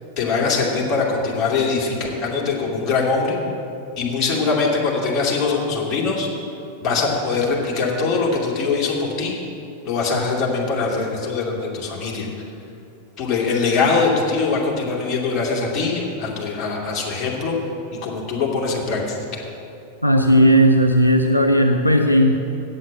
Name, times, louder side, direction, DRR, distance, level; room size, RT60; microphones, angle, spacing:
voice 1, 0.2-3.4 4.0-6.3 6.8-9.4 9.8-12.3 13.2-17.6 17.9-19.4, left 4 dB, 30° left, -4 dB, 2.6 m, -22 dB
voice 2, 20.0-22.3, equal, 90° left, 3 dB, 0.6 m, -15 dB
8.7 x 7.9 x 7.6 m, 2.8 s
figure-of-eight pair, 90°, 0 cm